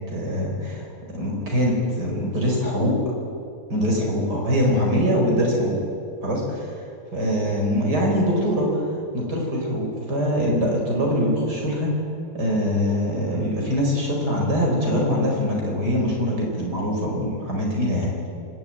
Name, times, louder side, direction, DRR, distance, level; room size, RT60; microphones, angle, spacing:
voice 1, 0.1-0.9 1.1-3.0 3.7-5.7 6.2-6.7 7.1-8.8 9.1-11.9 12.3-18.1, equal, 80° right, -1 dB, 5.3 m, -23 dB
25.5 x 12.5 x 9.1 m, 2.4 s
omnidirectional pair, 1.7 m